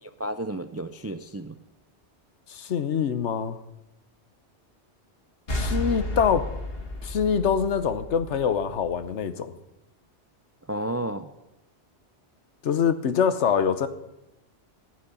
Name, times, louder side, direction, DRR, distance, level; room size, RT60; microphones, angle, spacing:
voice 1, 0.0-1.6 10.7-11.3, right 1 dB, 20° right, 10 dB, 0.4 m, -32 dB
voice 2, 2.5-3.6 5.5-6.5 7.0-9.5 12.6-13.9, left 7 dB, 75° left, 12 dB, 1.2 m, -24 dB
sound 1, 5.5-9.0, left 1 dB, 55° left, 2.2 m, -32 dB
14.5 x 6.3 x 10.0 m, 0.95 s
omnidirectional pair, 1.2 m